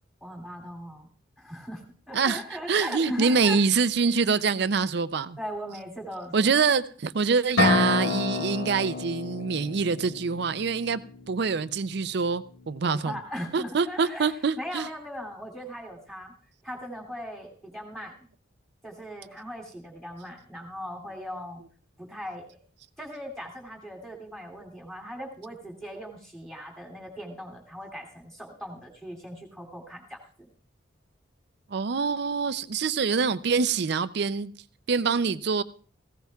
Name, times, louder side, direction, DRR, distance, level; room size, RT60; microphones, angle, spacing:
voice 1, 0.2-1.1 1.4-3.6 5.4-6.5 12.8-16.3 16.6-18.1 18.8-21.6 22.0-22.6 23.0-30.5, equal, ahead, 0 dB, 2.8 m, -39 dB
voice 2, 2.7-5.4 6.3-11.0 11.3-13.2 13.5-14.9 31.7-34.5 34.9-35.6, right 5 dB, 60° right, 15 dB, 0.5 m, -25 dB
sound 1, 7.6-11.3, left 3 dB, 90° left, 1.8 m, -28 dB
18.5 x 16.5 x 2.4 m, 0.42 s
head